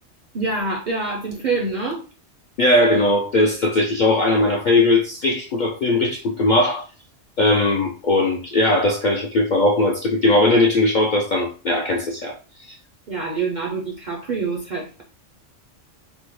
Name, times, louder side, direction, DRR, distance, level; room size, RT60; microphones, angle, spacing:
voice 1, 0.3-2.0 13.1-15.0, right 3 dB, 60° right, 0.5 m, -26 dB
voice 2, 2.6-6.9 7.4-12.3 12.6-12.7, left 2 dB, 65° left, 0.4 m, -19 dB
3.5 x 2.1 x 2.9 m
omnidirectional pair, 1.3 m